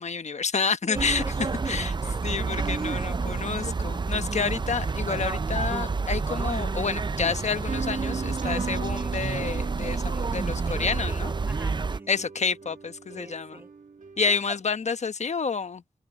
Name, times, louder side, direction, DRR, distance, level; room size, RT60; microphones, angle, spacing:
voice 1, 0.0-1.2 1.7-1.9 2.2-11.3 12.1-13.6 14.2-15.8, left 5 dB, 60° left, 1.1 m, -29 dB
voice 2, 0.8-2.3 10.7-12.3 13.2-13.7 14.3-14.6, right 1 dB, 15° right, 1.4 m, -44 dB
sound 1, 0.9-12.0, right 4 dB, 35° right, 0.5 m, -29 dB
sound 2, 7.7-14.6, right 5 dB, 70° right, 2.2 m, -38 dB
cardioid pair, 55°, 13 cm